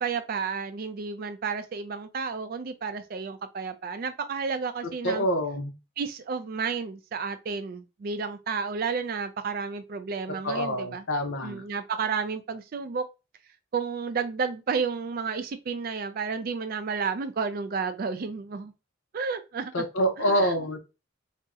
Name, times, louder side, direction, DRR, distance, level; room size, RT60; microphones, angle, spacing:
voice 1, 0.0-5.3 6.0-11.0 11.4-13.1 13.7-18.7 19.1-19.9 20.2-20.6, right 5 dB, 45° right, 0.3 m, -31 dB
voice 2, 5.0-5.7 10.4-11.6 19.7-20.8, equal, 75° left, 0.7 m, -26 dB
2.7 x 2.0 x 3.5 m
head